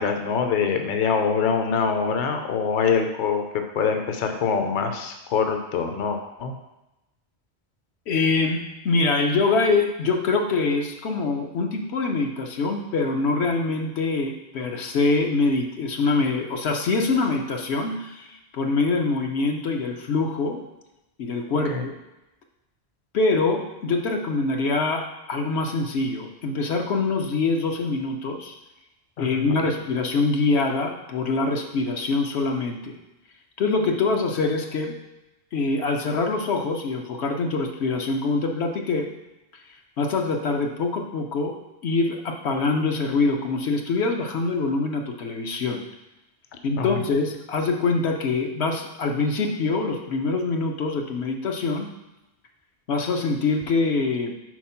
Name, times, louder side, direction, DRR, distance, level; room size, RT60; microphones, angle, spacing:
voice 1, 0.0-6.5 21.7-21.8 29.2-29.3 29.6-29.7 46.8-47.0, left 6 dB, 55° left, 5 dB, 0.7 m, -24 dB
voice 2, 8.1-20.6 21.2-21.9 23.1-28.5 29.2-33.0 33.6-35.0 35.5-39.1 40.0-45.8 46.6-51.9 52.9-54.3, left 3 dB, 80° left, 3 dB, 1.0 m, -24 dB
4.6 x 4.2 x 5.7 m, 0.96 s
omnidirectional pair, 1.1 m